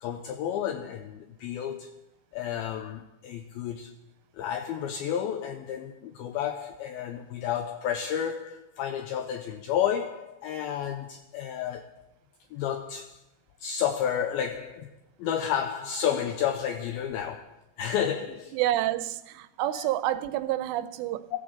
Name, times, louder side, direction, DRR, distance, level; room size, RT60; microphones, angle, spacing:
voice 1, 0.0-2.0 2.3-4.0 4.3-11.9 12.5-13.2 13.6-18.6 19.7-19.9, left 9 dB, 85° left, 2.1 m, -31 dB
voice 2, 18.5-21.3, right 14 dB, 90° right, 2.8 m, -28 dB
15.0 x 13.0 x 3.9 m
omnidirectional pair, 5.0 m